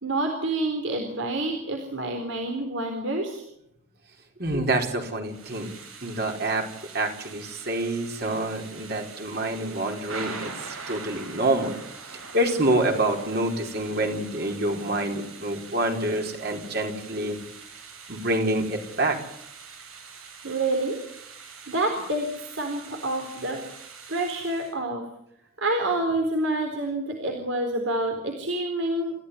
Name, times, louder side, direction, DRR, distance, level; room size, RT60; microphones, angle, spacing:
voice 1, 0.0-3.4 20.4-21.0 21.7-23.6 24.1-25.0 25.6-29.1, right 2 dB, 65° right, 3 dB, 4.0 m, -28 dB
voice 2, 4.4-5.7 6.0-6.7 6.9-11.8 12.1-17.4 18.1-19.2, right 1 dB, 50° right, 3 dB, 4.6 m, -27 dB
Thunder / Rain, 5.2-24.7, right 5 dB, 85° right, 7.1 m, -43 dB
29.0 x 15.5 x 9.8 m, 0.77 s
head